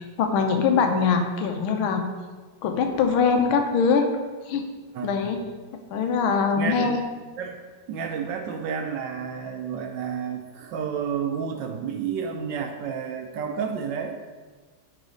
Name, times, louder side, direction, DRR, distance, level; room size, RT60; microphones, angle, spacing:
voice 1, 0.0-2.0 2.6-4.1 4.5-4.6 5.0-5.4 5.9-7.0, left 5 dB, 80° left, 4 dB, 1.6 m, -22 dB
voice 2, 4.9-5.2 6.6-7.0 7.4-14.2, right 7 dB, 75° right, 4 dB, 1.1 m, -31 dB
9.7 x 4.2 x 3.9 m, 1.4 s
omnidirectional pair, 2.3 m